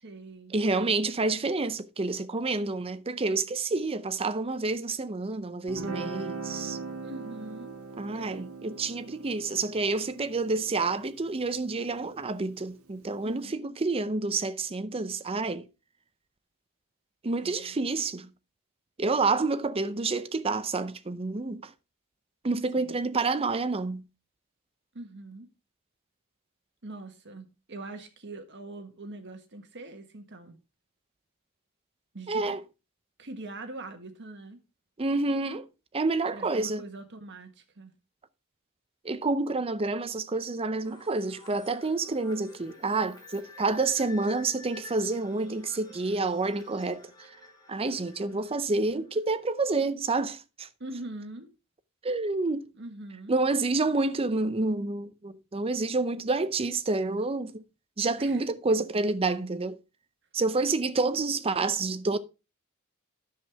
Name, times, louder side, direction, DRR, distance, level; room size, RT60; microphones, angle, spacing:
voice 1, 0.0-0.5 7.0-7.8 8.1-8.5 13.2-13.5 17.4-17.9 22.8-23.0 24.9-25.5 26.8-30.6 32.1-32.4 33.2-34.6 36.3-37.9 50.8-51.5 52.8-53.3 58.2-58.4, right 2 dB, 55° right, 1.5 m, -43 dB
voice 2, 0.5-6.8 8.0-15.7 17.2-18.3 19.0-21.7 22.4-24.0 32.3-32.6 35.0-35.7 35.9-36.8 39.0-47.3 47.7-50.7 52.0-52.7 53.3-57.6 58.0-59.8 60.3-62.2, right 3 dB, 25° right, 0.6 m, -28 dB
Guitar, 5.7-12.8, right 3 dB, 80° right, 1.4 m, -41 dB
sound 1, 40.8-49.5, left 3 dB, 20° left, 2.4 m, -51 dB
10.5 x 7.5 x 3.5 m
head